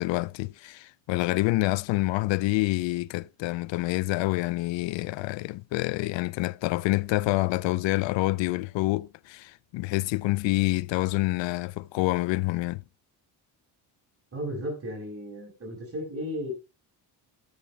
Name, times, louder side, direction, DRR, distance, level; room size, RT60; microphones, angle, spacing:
voice 1, 0.0-12.8, left 20 dB, 75° left, 0.5 m, -27 dB
voice 2, 14.3-16.5, equal, 30° right, 6.7 m, -34 dB
13.5 x 8.0 x 3.4 m
cardioid pair, 130°, 45 cm